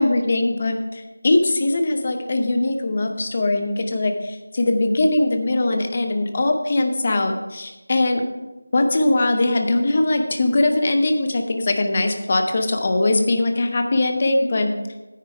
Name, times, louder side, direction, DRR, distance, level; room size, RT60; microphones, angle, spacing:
voice 1, 0.0-8.2 8.7-14.7, left 2 dB, 20° left, 6 dB, 0.7 m, -21 dB
9.9 x 9.4 x 4.8 m, 1.1 s
figure-of-eight pair, 180°, 0 cm